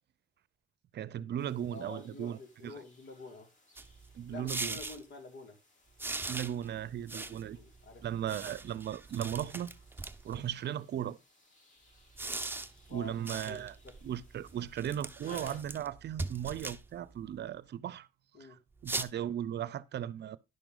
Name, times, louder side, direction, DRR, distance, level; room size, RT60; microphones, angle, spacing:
voice 1, 0.9-2.4 2.6-2.7 4.1-4.8 6.3-7.6 8.0-9.7 10.2-11.2 12.9-13.7 14.0-18.1 18.8-20.4, right 10 dB, 60° right, 0.7 m, -37 dB
sound 1, 1.4-15.6, left 1 dB, 40° left, 5.3 m, -61 dB
voice 2, 1.7-3.5 4.3-5.6 7.2-8.1 12.9-13.1 13.5-14.0 18.3-18.6, left 3 dB, 60° left, 2.7 m, -48 dB
sound 2, 3.8-5.0 6.0-10.5 12.0-17.4 18.8-19.0, right 2 dB, 10° right, 0.9 m, -41 dB
11.0 x 6.0 x 3.9 m
cardioid pair, 90°, 20 cm